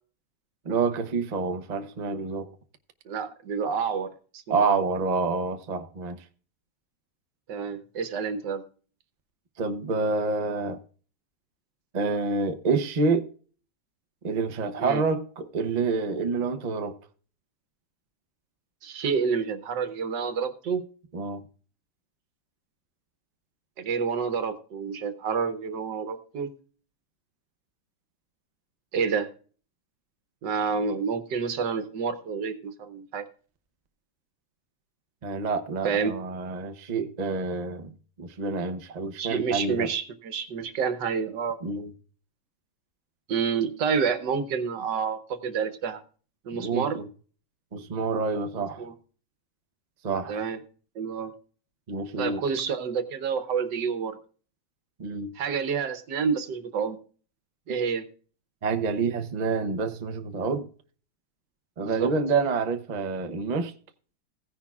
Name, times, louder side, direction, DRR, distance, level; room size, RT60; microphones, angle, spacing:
voice 1, 0.6-2.5 4.5-6.2 9.6-10.8 11.9-13.3 14.2-16.9 21.1-21.4 35.2-39.9 41.6-41.9 46.6-47.0 47.7-48.9 50.0-50.4 51.9-52.4 55.0-55.3 58.6-60.7 61.8-63.7, right 4 dB, 35° right, 0.6 m, -28 dB
voice 2, 3.1-4.9 7.5-8.6 14.8-15.0 18.8-20.8 23.8-26.5 28.9-29.3 30.4-33.2 35.8-36.2 39.2-41.6 43.3-46.0 46.4-47.0 48.8-48.9 50.3-50.6 50.9-51.3 52.2-54.2 55.3-57.0 57.7-58.0 61.8-62.1, right 6 dB, 75° right, 1.6 m, -29 dB
16.0 x 10.0 x 2.4 m
omnidirectional pair, 1.9 m